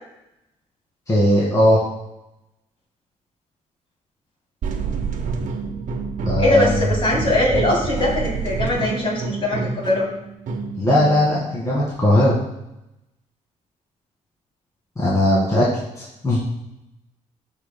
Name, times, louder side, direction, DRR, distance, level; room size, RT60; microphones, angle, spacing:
voice 1, 1.1-1.8 6.2-6.8 10.8-12.4 15.0-15.6 16.0-16.4, left 1 dB, 25° left, -6 dB, 1.9 m, -18 dB
sound 1, 4.6-11.3, right 4 dB, 75° right, 1.0 m, -27 dB
voice 2, 6.4-10.1, left 2 dB, 45° left, -3 dB, 3.1 m, -21 dB
13.0 x 5.6 x 2.2 m, 0.87 s
cardioid pair, 110°, 13 cm